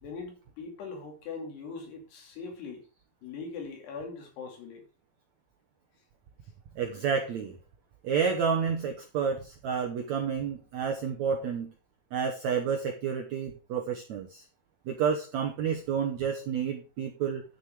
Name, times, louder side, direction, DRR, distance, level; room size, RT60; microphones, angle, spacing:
voice 1, 0.0-2.8 3.2-4.9, left 4 dB, 85° left, 4.7 m, -41 dB
voice 2, 6.7-7.6 8.0-11.7 12.1-14.4 14.9-17.4, right 6 dB, 80° right, 1.6 m, -30 dB
11.0 x 6.5 x 4.7 m
omnidirectional pair, 4.6 m